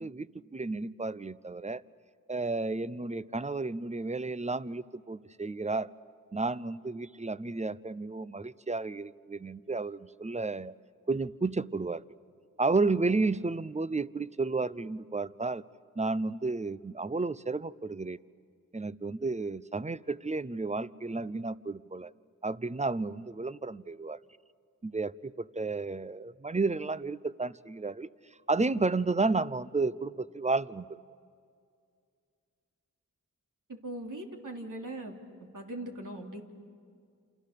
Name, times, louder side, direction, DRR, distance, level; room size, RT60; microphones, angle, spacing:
voice 1, 0.0-1.8 2.3-5.9 6.3-10.7 11.1-12.0 12.6-15.6 16.0-18.2 18.7-22.1 22.4-24.2 24.8-28.1 28.5-31.0, right 3 dB, 20° right, 17 dB, 0.7 m, -32 dB
voice 2, 33.7-35.1 35.5-36.4, right 1 dB, 65° right, 0 dB, 3.2 m, -40 dB
28.5 x 27.5 x 6.8 m, 2.3 s
cardioid pair, 40°, 34 cm